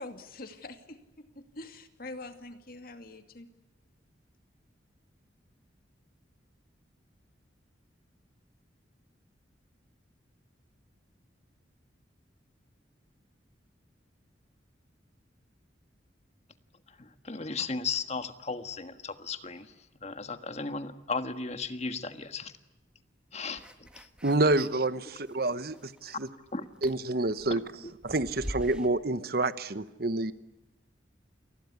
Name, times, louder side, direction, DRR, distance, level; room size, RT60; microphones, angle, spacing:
voice 1, 0.0-3.5, left 2 dB, 50° left, 8 dB, 2.4 m, -44 dB
voice 2, 16.9-19.7 20.0-22.5 23.3-24.1 26.5-26.6 27.5-27.6, left 4 dB, 35° left, 10 dB, 1.5 m, -36 dB
sound 1, 23.6-24.8 25.2-26.3 26.7-28.9, equal, 5° right, 1.7 m, -44 dB
voice 3, 24.2-26.3 26.8-27.6 28.0-30.3, right 2 dB, 55° right, 13 dB, 1.2 m, -28 dB
28.5 x 20.5 x 9.6 m, 0.93 s
head